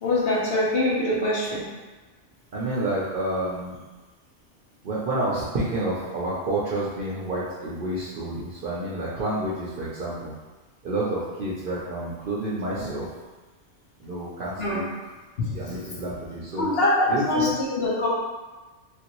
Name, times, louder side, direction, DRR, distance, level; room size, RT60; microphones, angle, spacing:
voice 1, 0.0-1.6 14.6-14.8 15.4-15.8 16.6-18.1, left 1 dB, 55° left, -6 dB, 0.9 m, -24 dB
voice 2, 2.5-3.8 4.8-10.3 10.8-13.1 14.0-14.8 15.5-16.7 17.1-17.5, right 1 dB, 55° right, -6 dB, 0.6 m, -29 dB
3.1 x 2.6 x 2.9 m, 1.2 s
omnidirectional pair, 1.3 m